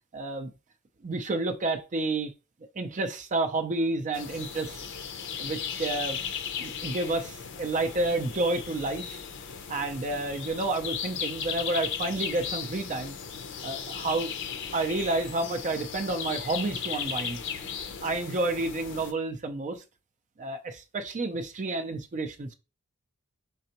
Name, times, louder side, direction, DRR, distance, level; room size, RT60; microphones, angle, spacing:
voice 1, 0.1-0.5 1.0-2.3 2.8-4.8 5.4-6.2 6.6-9.2 9.7-13.2 13.6-14.3 14.7-17.4 18.0-19.8 20.4-22.5, right 2 dB, 35° right, 0.5 m, -30 dB
sound 1, 4.1-19.1, left 7 dB, 60° left, 0.6 m, -36 dB
4.2 x 3.8 x 2.9 m
head